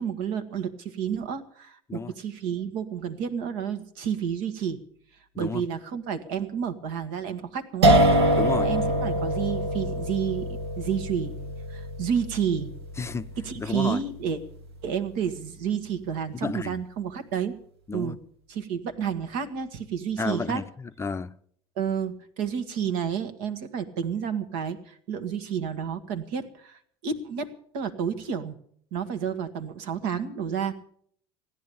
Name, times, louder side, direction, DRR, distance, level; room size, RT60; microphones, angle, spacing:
voice 1, 0.0-4.8 5.4-8.0 8.6-11.3 11.7-12.7 13.4-14.4 14.8-17.6 17.9-18.2 18.5-20.6 21.8-28.6 28.9-30.7, right 7 dB, 65° right, 1.4 m, -30 dB
sound 1, 7.8-14.8, right 1 dB, 80° right, 1.3 m, -25 dB
voice 2, 8.4-8.7 13.0-13.3 13.6-14.0 16.4-16.8 17.9-18.2 20.2-21.3, left 4 dB, 20° left, 0.6 m, -31 dB
16.0 x 10.5 x 7.0 m
hypercardioid pair, 70°, 13 cm